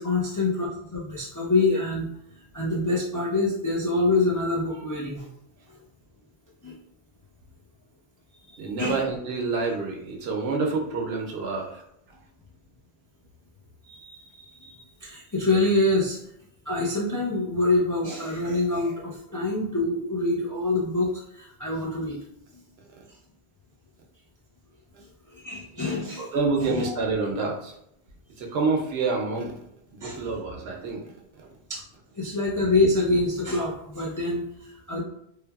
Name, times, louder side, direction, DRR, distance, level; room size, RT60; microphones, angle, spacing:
voice 1, 0.0-2.1 2.5-5.3 5.7-5.8 6.6-6.8 8.5-9.0 13.8-16.2 16.7-22.2 22.5-22.6 25.3-26.3 26.6-26.9 30.0-30.2 31.7-31.8 32.1-35.0, left 2 dB, 35° left, -5 dB, 0.3 m, -26 dB
voice 2, 8.6-11.8 26.2-27.7 28.4-29.6 29.9-31.0 31.4-31.5, right 4 dB, 75° right, 1 dB, 0.8 m, -27 dB
3.2 x 2.1 x 2.3 m, 0.75 s
omnidirectional pair, 1.1 m